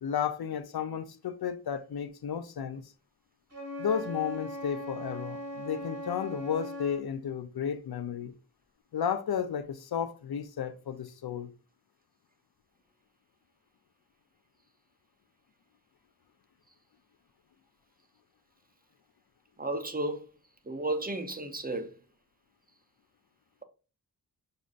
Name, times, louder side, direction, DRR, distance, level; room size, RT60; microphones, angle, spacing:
voice 1, 0.0-2.8 3.8-8.3 8.9-11.5, left 8 dB, 70° left, 0.5 m, -33 dB
Wind instrument woodwind instrument, 3.5-7.1, equal, 40° right, 1.9 m, -39 dB
voice 2, 19.6-20.2 20.7-21.9, right 2 dB, 20° right, 0.7 m, -33 dB
6.2 x 2.7 x 2.4 m
cardioid pair, 55°, 39 cm